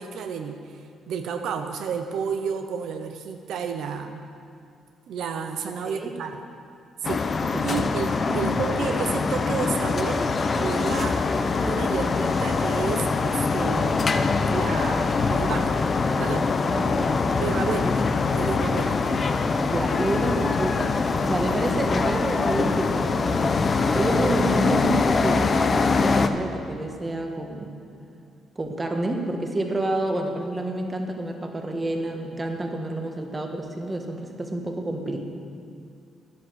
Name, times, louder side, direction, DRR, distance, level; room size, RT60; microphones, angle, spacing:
voice 1, 0.0-4.2 5.1-6.4 7.0-7.2 7.6-10.3 10.6-11.2 11.6-14.1 14.5-15.8 16.2-16.5 17.3-18.0 18.3-19.0, right 6 dB, 75° right, 6 dB, 0.7 m, -31 dB
sound 1, 7.0-26.3, left 4 dB, 40° left, 0.7 m, -23 dB
voice 2, 7.4-7.8 8.3-8.5 16.7-17.4 19.0-19.2 19.6-23.6 23.9-27.7 28.5-35.2, right 2 dB, 20° right, 3 dB, 1.6 m, -29 dB
10.5 x 10.0 x 6.4 m, 2.4 s
cardioid pair, 90°, 0 cm